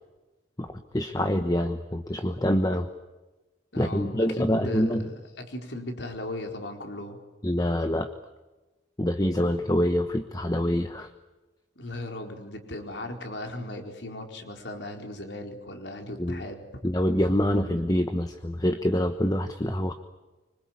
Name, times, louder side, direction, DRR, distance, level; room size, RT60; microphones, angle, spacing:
voice 1, 0.6-2.9 3.8-5.1 7.4-8.1 9.0-11.1 16.2-16.4 16.8-19.9, equal, 20° left, 7 dB, 1.0 m, -26 dB
voice 2, 3.7-4.1 4.4-7.2 11.8-16.6, left 1 dB, 70° left, 3 dB, 4.5 m, -37 dB
26.0 x 25.0 x 8.7 m, 1.1 s
head